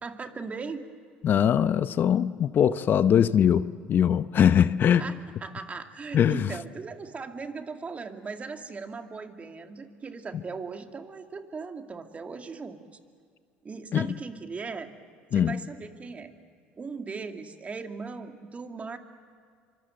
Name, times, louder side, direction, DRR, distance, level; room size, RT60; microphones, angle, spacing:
voice 1, 0.0-0.9 5.0-12.8 13.6-14.9 15.3-16.3 16.8-19.0, right 4 dB, 30° right, 5 dB, 2.4 m, -38 dB
voice 2, 1.2-5.1 6.1-6.5 10.3-10.4 13.9-14.1 15.3-15.6, left 9 dB, 50° left, 14 dB, 0.8 m, -22 dB
26.0 x 24.5 x 7.8 m, 2.2 s
hypercardioid pair, 75°, 5 cm